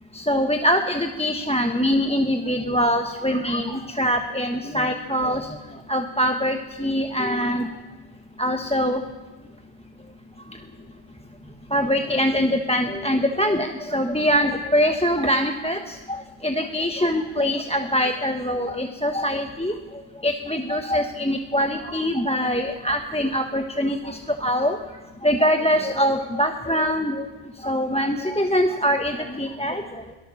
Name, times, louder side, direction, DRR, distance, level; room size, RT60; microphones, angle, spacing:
voice 1, 0.1-5.5 5.9-7.7 8.4-9.0 11.7-16.0 16.4-19.7 20.2-24.8 25.2-27.3 27.6-29.8, equal, 5° left, 5 dB, 0.9 m, -23 dB
23.5 x 18.0 x 7.0 m, 1.2 s
omnidirectional pair, 1.1 m